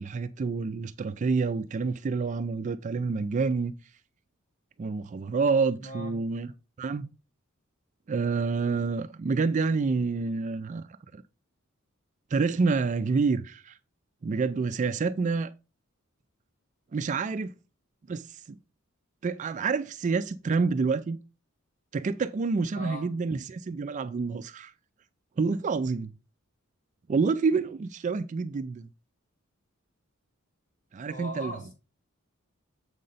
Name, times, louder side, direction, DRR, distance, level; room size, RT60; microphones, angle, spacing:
voice 1, 0.0-3.7 4.8-6.5 6.8-7.1 8.1-11.2 12.3-13.8 14.2-15.5 16.9-17.5 18.1-18.6 19.2-21.2 21.9-24.7 25.4-26.1 27.1-28.9 30.9-31.5, right 4 dB, 35° right, 0.3 m, -28 dB
voice 2, 5.8-6.2 22.7-23.2 31.1-31.7, right 1 dB, 35° left, 4.2 m, -39 dB
7.5 x 5.2 x 4.0 m
head